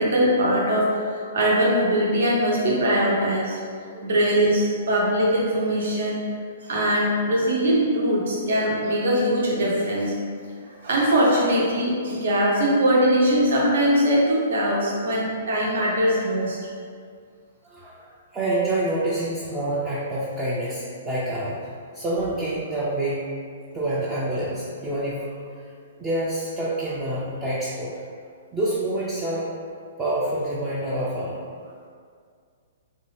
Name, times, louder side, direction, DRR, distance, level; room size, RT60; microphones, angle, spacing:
voice 1, 0.0-3.6 4.0-6.2 6.6-10.1 10.8-16.6, equal, 70° right, -4 dB, 0.8 m, -21 dB
voice 2, 17.6-21.7 21.9-23.2 23.7-25.5 26.0-27.9 28.5-29.5 30.0-31.4, right 1 dB, 15° right, -8 dB, 0.4 m, -27 dB
2.6 x 2.3 x 3.2 m, 2.1 s
hypercardioid pair, 150°, 0 cm